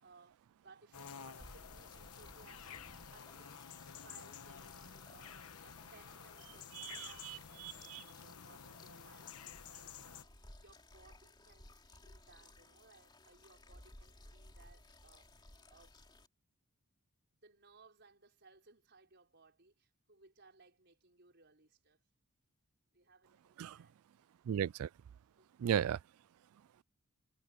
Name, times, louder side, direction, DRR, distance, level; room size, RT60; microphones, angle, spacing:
voice 1, 0.0-16.0 17.3-22.1 22.9-24.0 25.4-25.5, right 3 dB, 50° right, 5.4 m, -64 dB
sound 1, 0.9-10.2, left 7 dB, 85° left, 1.2 m, -52 dB
sound 2, 1.4-16.3, left 2 dB, 20° left, 3.0 m, -59 dB
voice 2, 6.8-8.0 23.6-23.8 24.5-24.9 25.6-26.0, right 9 dB, 75° right, 0.3 m, -36 dB
head